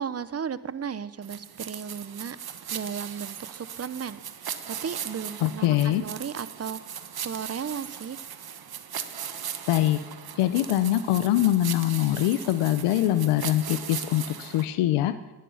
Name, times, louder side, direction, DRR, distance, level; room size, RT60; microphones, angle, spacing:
voice 1, 0.0-2.4 2.7-6.8 7.2-8.2, right 7 dB, 30° right, 16 dB, 0.9 m, -35 dB
sound 1, 1.2-14.7, right 8 dB, 45° right, 1.4 m, -38 dB
voice 2, 5.4-6.0 9.7-10.0 10.4-15.2, left 13 dB, 80° left, 12 dB, 0.8 m, -23 dB
18.5 x 11.0 x 5.7 m, 1.3 s
cardioid pair, 75°, 50 cm